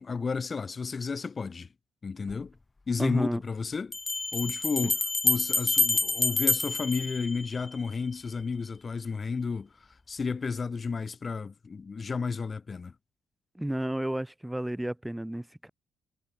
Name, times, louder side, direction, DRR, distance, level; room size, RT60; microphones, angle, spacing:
voice 1, 0.0-1.7 2.0-2.5 2.9-3.9 4.3-5.0 5.2-9.7 10.1-12.9, left 5 dB, 35° left, 5.4 m, -32 dB
Bell, 2.3-2.4 3.9-7.8, left 3 dB, 20° left, 3.1 m, -28 dB
voice 2, 3.0-3.4 13.6-15.7, right 1 dB, 5° right, 3.7 m, -32 dB
cardioid pair, 90°, 0 cm